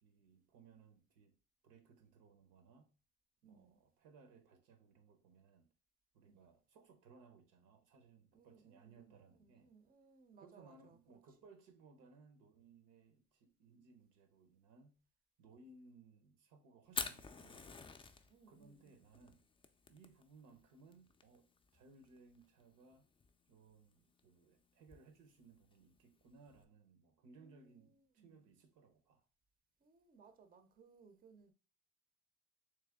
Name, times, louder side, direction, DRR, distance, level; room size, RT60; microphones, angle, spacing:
voice 1, 0.0-1.3 1.6-2.9 3.4-5.7 6.1-9.7 10.4-15.0 15.4-17.7 18.5-19.4 19.9-23.1 23.5-29.2, right 4 dB, 80° right, 0.9 m, -63 dB
voice 2, 3.4-3.8 6.2-6.5 8.3-11.2 18.3-19.0 27.2-28.6 29.8-31.5, right 5 dB, 30° right, 0.6 m, -65 dB
Fire, 16.9-26.6, left 4 dB, 20° left, 0.4 m, -50 dB
3.4 x 3.1 x 3.5 m
supercardioid pair, 85°, 31 cm